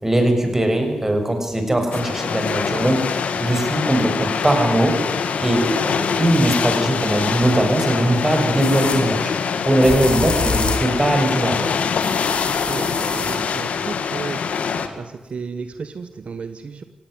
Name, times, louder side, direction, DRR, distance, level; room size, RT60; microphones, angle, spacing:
voice 1, 0.0-3.0 3.4-5.0 5.4-9.3 9.6-11.7, right 1 dB, 15° right, 5 dB, 6.4 m, -20 dB
sound 1, 1.9-14.9, left 6 dB, 90° left, 1.9 m, -24 dB
sound 2, 8.6-9.0 9.8-10.9 12.0-13.4, left 4 dB, 55° left, 4.1 m, -26 dB
voice 2, 12.7-14.4 15.0-16.8, right 5 dB, 65° right, 10 dB, 1.3 m, -33 dB
18.0 x 17.0 x 9.5 m, 1.2 s
cardioid pair, 75°, 2 cm